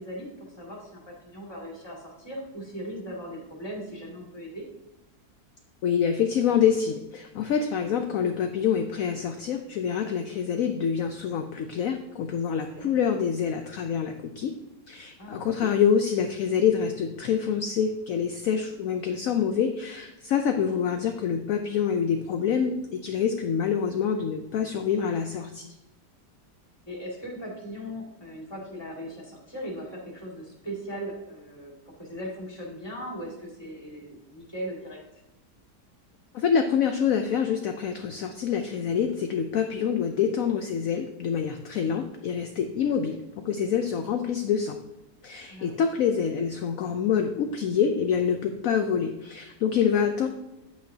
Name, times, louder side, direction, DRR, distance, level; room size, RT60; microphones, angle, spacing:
voice 1, 0.0-4.6 12.5-12.9 15.2-15.7 26.9-35.0 45.5-45.8, equal, 15° left, -3 dB, 2.2 m, -39 dB
voice 2, 5.8-14.5 14.9-25.7 36.3-44.8 45.2-50.3, left 7 dB, 65° left, 6 dB, 0.9 m, -26 dB
9.3 x 8.4 x 2.8 m, 0.94 s
omnidirectional pair, 1.9 m